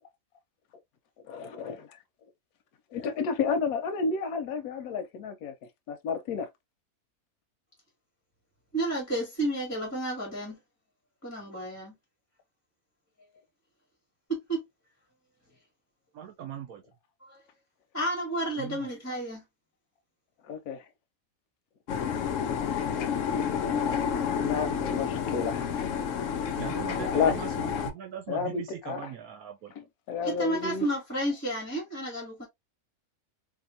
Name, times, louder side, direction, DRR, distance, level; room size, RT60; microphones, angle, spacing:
voice 1, 1.2-2.0 2.9-5.5 5.9-6.5 20.4-20.9 24.4-25.8 27.0-27.4 28.3-29.0 29.8-30.9, left 5 dB, 90° left, 1.1 m, -31 dB
voice 2, 8.7-10.6 11.2-11.9 14.3-14.6 17.3-17.4 17.9-19.4 30.2-32.5, right 1 dB, 10° left, 1.4 m, -31 dB
voice 3, 16.1-16.8 18.6-18.9 26.6-29.7, right 10 dB, 85° right, 1.2 m, -40 dB
sound 1, 21.9-27.9, left 7 dB, 70° left, 0.9 m, -30 dB
3.8 x 2.8 x 2.5 m
omnidirectional pair, 1.5 m